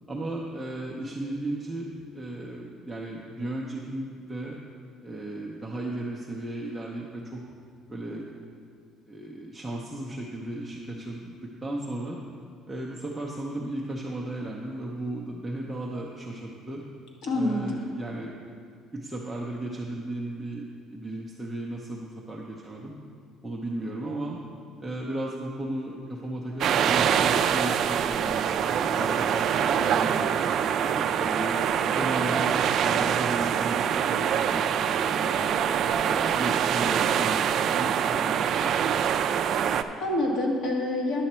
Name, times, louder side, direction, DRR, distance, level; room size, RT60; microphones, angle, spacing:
voice 1, 0.1-4.6 5.0-7.4 7.9-8.3 9.0-12.2 12.7-16.8 17.3-18.4 18.9-20.6 20.9-22.9 23.4-24.4 24.8-28.5 28.9-30.3 30.8-31.6 32.0-35.6 36.0-38.7, right 1 dB, 5° right, -4 dB, 0.6 m, -35 dB
voice 2, 17.2-17.8 39.5-41.2, left 1 dB, 55° left, -2 dB, 1.8 m, -28 dB
sound 1, 26.6-39.8, right 8 dB, 45° right, 0.3 m, -25 dB
10.5 x 7.0 x 4.3 m, 2.2 s
cardioid pair, 170°, 0 cm